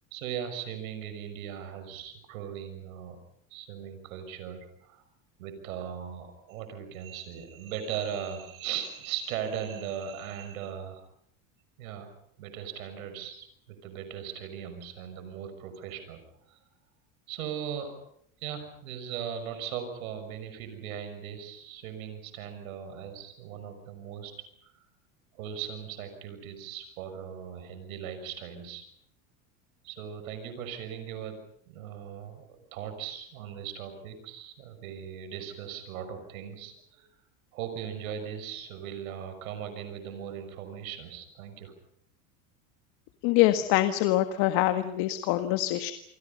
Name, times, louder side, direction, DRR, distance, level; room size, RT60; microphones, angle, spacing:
voice 1, 0.1-3.2 3.5-5.0 5.4-11.1 11.8-12.1 12.4-16.2 16.5-16.6 17.3-18.0 18.4-24.3 25.3-28.8 29.8-31.4 31.7-37.1 37.5-41.7, right 8 dB, 85° right, 8 dB, 6.2 m, -38 dB
voice 2, 43.2-45.9, left 14 dB, 65° left, 9 dB, 1.8 m, -24 dB
28.5 x 26.5 x 5.5 m, 0.67 s
supercardioid pair, 105°, 41 cm